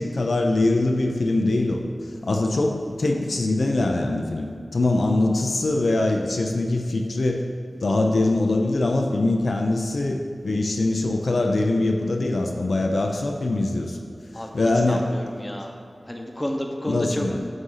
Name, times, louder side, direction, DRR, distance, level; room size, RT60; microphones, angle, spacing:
voice 1, 0.0-1.8 2.2-7.4 7.8-14.0 14.5-15.0 16.9-17.4, left 2 dB, 80° left, 2 dB, 0.5 m, -23 dB
voice 2, 14.3-15.8 16.0-17.3, left 1 dB, 20° left, 2 dB, 0.8 m, -31 dB
7.8 x 2.7 x 5.5 m, 2.4 s
wide cardioid pair, 50°, 0 cm